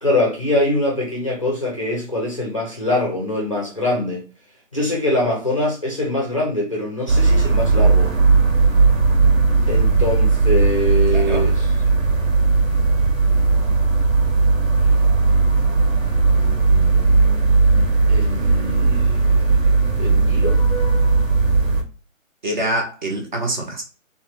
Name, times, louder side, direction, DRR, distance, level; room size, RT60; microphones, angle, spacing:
voice 1, 0.0-4.2 4.7-8.1 9.7-11.7 18.1-19.5 19.7-20.6, left 1 dB, 25° left, 0.5 m, -23 dB
sound 1, 7.1-21.8, right 3 dB, 75° right, 1.0 m, -17 dB
voice 2, 11.1-11.5 22.4-23.8, right 1 dB, 35° right, 0.6 m, -25 dB
2.9 x 2.1 x 2.8 m
hypercardioid pair, 165°, 40 cm